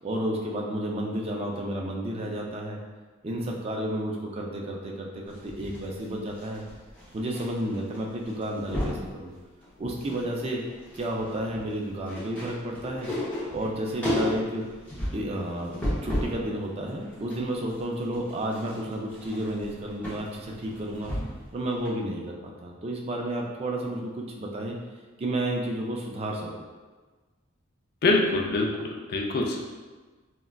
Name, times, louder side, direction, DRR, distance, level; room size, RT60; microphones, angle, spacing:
voice 1, 0.0-2.8 3.2-6.6 7.1-9.3 9.8-10.6 11.0-13.1 13.5-14.6 15.1-15.7 16.0-21.1 21.5-24.8 25.2-26.5, right 1 dB, 30° right, -1 dB, 0.3 m, -31 dB
sound 1, 5.3-7.4 7.7-8.0 8.2-9.1 9.6-10.3 10.6-16.4 16.8-21.5 21.8-21.9, left 1 dB, 10° left, 0.6 m, -33 dB
voice 2, 28.0-29.7, left 2 dB, 50° left, 0 dB, 0.3 m, -25 dB
3.5 x 2.2 x 2.2 m, 1.3 s
head